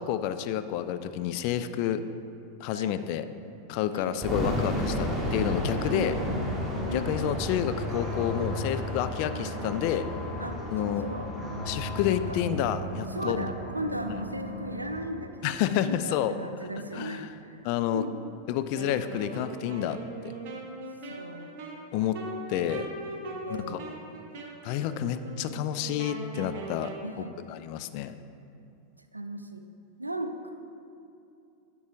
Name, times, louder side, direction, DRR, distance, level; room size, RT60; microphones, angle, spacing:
voice 1, 0.0-2.0 2.6-3.3 3.7-6.1 6.9-10.1 10.7-11.0 11.7-13.5 15.4-16.3 16.9-17.3 17.6-18.0 18.5-20.0 20.2-20.3 21.9-22.2 22.5-22.9 23.5-23.8 24.6-26.9 27.5-28.1, left 11 dB, 45° left, 11 dB, 0.3 m, -29 dB
voice 2, 2.7-3.0 3.9-4.3 5.8-6.5 6.9-7.4 9.3-9.6 10.4-11.3 12.1-12.4 13.1-17.7 17.9-18.2 21.0-21.6 23.4-23.9 27.0-27.4 29.1-29.6 30.0-30.5, right 1 dB, 85° right, 7 dB, 0.4 m, -37 dB
sound 1, 4.2-15.1, equal, 5° right, 1.2 m, -34 dB
sound 2, 6.0-15.0, left 1 dB, 20° right, 0.9 m, -37 dB
Wind instrument woodwind instrument, 18.7-27.1, right 3 dB, 45° right, 1.0 m, -40 dB
10.5 x 6.9 x 2.6 m, 2.5 s
figure-of-eight pair, 90°, 0 cm